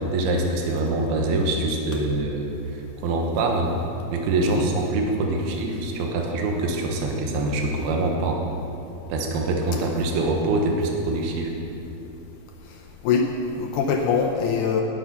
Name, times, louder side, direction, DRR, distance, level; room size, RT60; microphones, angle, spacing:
voice 1, 0.0-3.7 4.1-8.4 9.1-11.5, right 2 dB, 80° right, 1 dB, 3.0 m, -24 dB
voice 2, 13.0-14.8, left 6 dB, 80° left, 2 dB, 1.8 m, -23 dB
18.0 x 6.2 x 5.7 m, 3.0 s
omnidirectional pair, 4.5 m